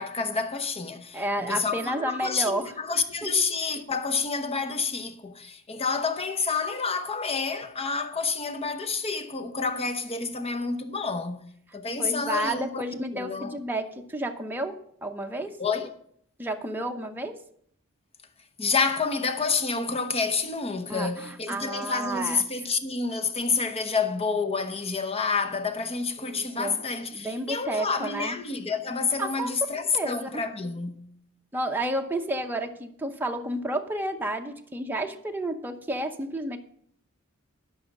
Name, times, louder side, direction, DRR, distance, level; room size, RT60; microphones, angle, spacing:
voice 1, 0.0-11.5 11.7-12.8 13.1-13.6 15.6-15.9 18.6-31.1, left 4 dB, 30° left, 0.9 m, -29 dB
voice 2, 1.1-2.7 3.2-3.4 12.0-15.5 16.4-17.4 20.9-22.4 26.2-26.8 27.1-28.4 29.2-29.5 29.9-30.3 31.5-36.6, right 1 dB, 10° right, 0.8 m, -31 dB
11.0 x 6.2 x 6.0 m
head